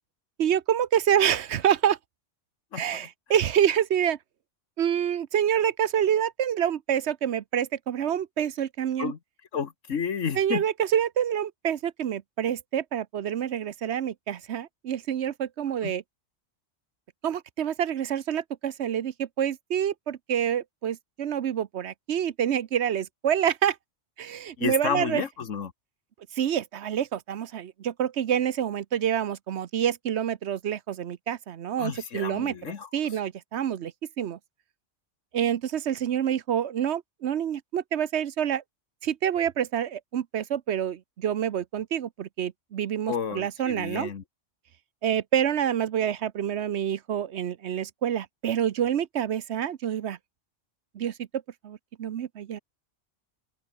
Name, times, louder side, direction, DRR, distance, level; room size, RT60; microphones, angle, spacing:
voice 1, 0.4-2.0 2.7-4.2 4.8-9.1 10.3-16.0 17.2-23.8 24.2-25.2 26.3-34.4 35.3-38.6 39.0-44.1 45.0-50.2 50.9-52.6, right 9 dB, 65° right, 1.0 m, -27 dB
voice 2, 2.7-3.1 9.0-9.2 9.5-10.6 15.8-15.9 24.6-25.7 31.8-32.9 43.1-44.2, left 7 dB, 85° left, 1.7 m, -31 dB
open air
omnidirectional pair, 1.3 m